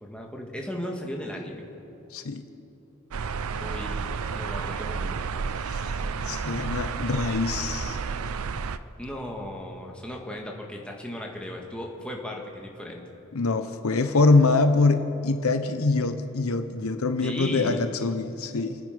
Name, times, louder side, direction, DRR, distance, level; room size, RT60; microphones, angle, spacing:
voice 1, 0.0-1.6 3.6-5.2 9.0-13.0 17.2-17.8, left 1 dB, 5° left, 0 dB, 1.7 m, -36 dB
voice 2, 2.1-2.4 5.7-5.8 6.2-8.0 13.3-18.8, left 3 dB, 70° left, 8 dB, 0.8 m, -24 dB
sound 1, 3.1-8.8, right 5 dB, 70° right, 0.5 m, -31 dB
29.0 x 9.9 x 5.0 m, 2.9 s
head